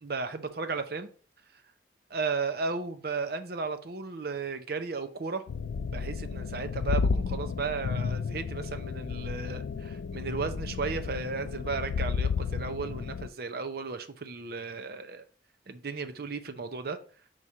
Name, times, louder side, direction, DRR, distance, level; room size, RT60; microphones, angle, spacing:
voice 1, 0.0-1.1 2.1-5.4 5.9-15.2 15.7-17.0, right 4 dB, 55° right, 10 dB, 0.7 m, -34 dB
sound 1, 5.5-13.3, left 5 dB, 75° left, 0.3 m, -32 dB
4.7 x 4.3 x 4.8 m, 0.40 s
head